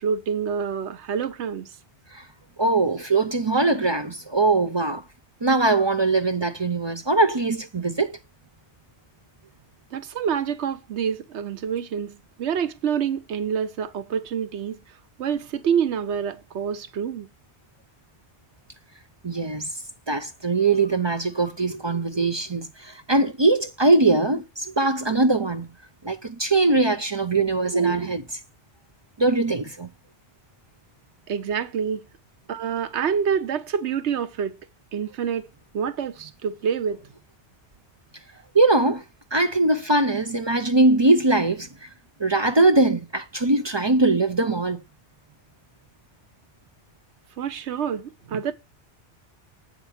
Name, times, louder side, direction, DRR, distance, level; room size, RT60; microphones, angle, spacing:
voice 1, 0.0-1.7 9.9-14.8 15.2-17.3 19.4-19.5 31.3-32.1 32.5-34.6 34.9-35.5 35.7-37.1 47.4-48.5, right 7 dB, 80° right, 1.0 m, -27 dB
voice 2, 2.6-5.0 5.4-8.2 19.2-19.7 20.1-25.7 26.0-28.4 29.2-29.9 38.5-39.0 39.3-41.9 42.2-44.8, right 2 dB, 35° right, 0.5 m, -21 dB
8.0 x 5.0 x 5.6 m
omnidirectional pair, 1.1 m